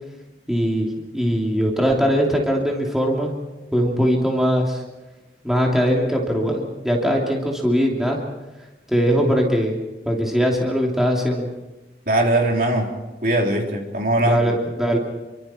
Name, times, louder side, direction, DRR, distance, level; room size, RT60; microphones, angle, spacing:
voice 1, 0.5-3.3 3.7-4.8 5.4-8.2 8.9-9.8 10.1-11.5 14.2-15.0, equal, ahead, -1 dB, 2.9 m, -20 dB
voice 2, 12.1-12.9 13.2-14.4, right 1 dB, 50° right, 1 dB, 3.4 m, -20 dB
28.5 x 24.0 x 4.4 m, 1.1 s
head